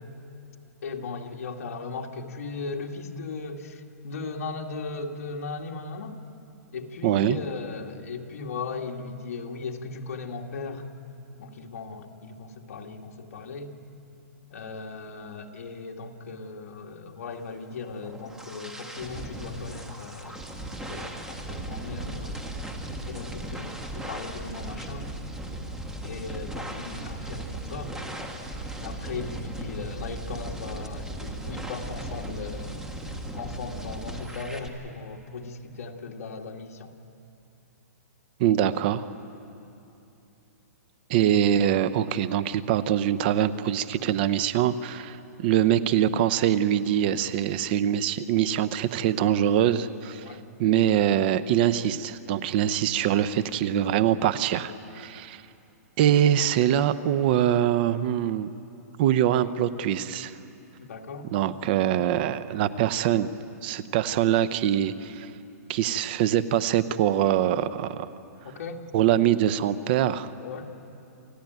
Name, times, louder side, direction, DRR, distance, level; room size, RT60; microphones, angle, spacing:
voice 1, 0.8-6.2 6.7-10.9 11.4-13.8 14.5-20.4 20.9-22.4 22.9-25.1 26.0-28.0 28.8-36.9 50.2-50.4 60.8-61.3 68.4-68.8 70.4-70.7, left 4 dB, 65° left, 1 dB, 2.1 m, -37 dB
voice 2, 7.0-7.4 38.4-39.0 41.1-50.2 50.6-55.4 56.0-58.5 59.0-60.3 61.3-63.3 63.6-65.3 65.7-68.1 68.9-70.3, right 10 dB, 35° right, 15 dB, 0.7 m, -23 dB
sound 1, 17.7-34.7, right 1 dB, 5° right, 1.4 m, -37 dB
28.5 x 15.0 x 9.3 m, 2.8 s
hypercardioid pair, 160°, 9 cm